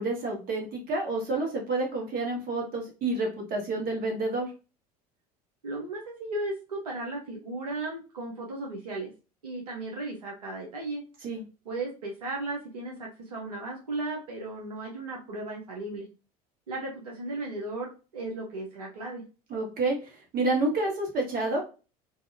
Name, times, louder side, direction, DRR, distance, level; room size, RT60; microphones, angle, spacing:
voice 1, 0.0-4.5 11.2-11.4 19.5-20.0 20.3-21.6, right 2 dB, 50° right, 0 dB, 1.4 m, -29 dB
voice 2, 5.6-9.1 9.4-11.0 11.7-16.1 16.7-19.2, right 2 dB, 90° right, -1 dB, 0.6 m, -35 dB
2.7 x 2.3 x 2.5 m, 0.33 s
hypercardioid pair, 70°, 19 cm